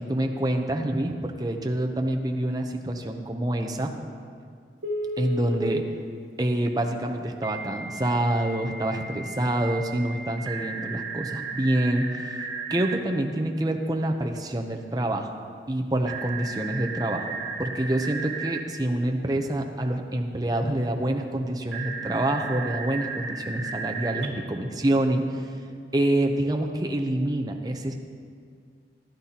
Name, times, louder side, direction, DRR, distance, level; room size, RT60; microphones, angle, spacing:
voice 1, 0.0-3.9 5.2-5.8 6.4-12.4 12.7-15.3 15.7-17.3 17.6-25.4 25.9-27.9, right 1 dB, 20° right, 3 dB, 0.7 m, -26 dB
Telephone, 4.8-5.6 7.4-13.0 16.1-18.6 21.7-24.3, right 3 dB, 85° right, 1.6 m, -34 dB
15.0 x 11.5 x 2.9 m, 2.1 s
head